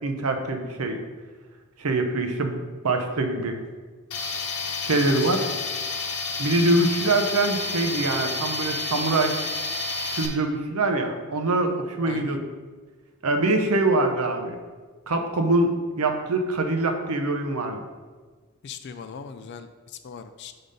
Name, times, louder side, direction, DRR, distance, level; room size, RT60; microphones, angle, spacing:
voice 1, 0.0-1.0 1.8-3.6 4.8-5.5 6.4-9.4 10.1-12.4 13.2-14.6 15.1-17.8, right 2 dB, 75° right, 5 dB, 0.7 m, -24 dB
Tools, 4.1-10.3, left 3 dB, 85° left, 0.9 m, -30 dB
voice 2, 4.9-5.3 12.1-12.4 18.6-20.5, left 6 dB, 50° left, 9 dB, 0.3 m, -40 dB
5.3 x 4.0 x 5.0 m, 1.4 s
head